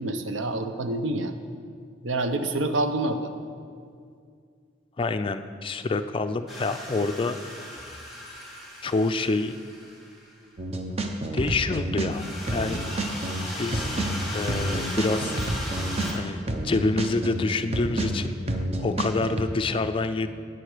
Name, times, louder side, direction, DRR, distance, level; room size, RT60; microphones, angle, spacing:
voice 1, 0.0-1.3 2.0-3.3, right 2 dB, 75° right, 8 dB, 0.7 m, -27 dB
voice 2, 5.0-7.4 8.8-9.6 11.3-12.8 13.6-14.0 14.3-15.4 16.1-20.3, left 3 dB, 25° left, 9 dB, 0.4 m, -27 dB
sound 1, 6.5-10.3 12.1-16.1, left 1 dB, ahead, 2.3 m, -37 dB
sound 2, 10.6-12.2 12.5-19.4, right 1 dB, 30° right, 0.7 m, -29 dB
10.5 x 8.3 x 5.0 m, 2.2 s
head